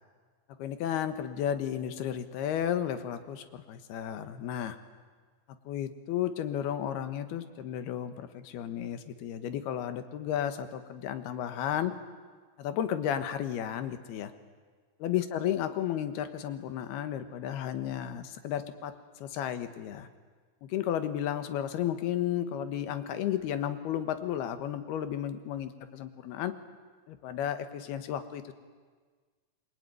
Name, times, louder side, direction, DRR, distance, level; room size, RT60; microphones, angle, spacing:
voice 1, 0.6-4.8 5.7-11.9 12.6-14.3 15.0-18.9 19.2-20.1 20.6-26.5 27.1-28.5, left 10 dB, 85° left, 10 dB, 3.3 m, -33 dB
27.5 x 23.0 x 9.4 m, 1.5 s
omnidirectional pair, 4.5 m